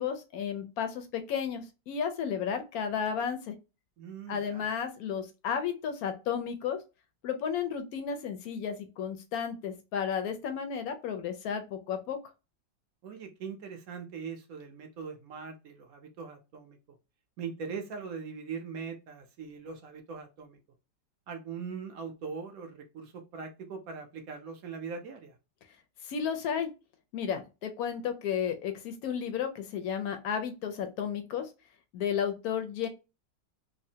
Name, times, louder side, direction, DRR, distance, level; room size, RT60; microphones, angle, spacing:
voice 1, 0.0-3.5 4.3-6.8 7.2-12.2 26.0-26.7 27.1-31.5 31.9-32.9, left 7 dB, 70° left, 7 dB, 0.8 m, -33 dB
voice 2, 4.0-4.7 13.0-16.8 17.4-20.6 21.3-25.4, right 5 dB, 70° right, 4 dB, 0.8 m, -41 dB
3.3 x 2.0 x 2.6 m, 0.28 s
omnidirectional pair, 2.0 m